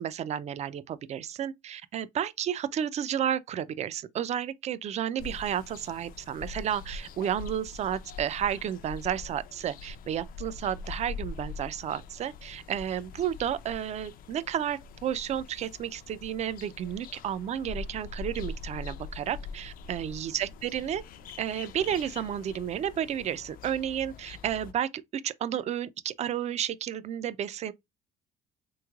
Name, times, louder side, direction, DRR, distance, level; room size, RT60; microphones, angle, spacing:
voice 1, 0.0-21.0 21.4-27.7, right 9 dB, 40° right, 0.4 m, -32 dB
sound 1, 5.2-24.7, left 4 dB, 55° left, 0.4 m, -43 dB
3.5 x 3.1 x 2.3 m
cardioid pair, 110°, 17 cm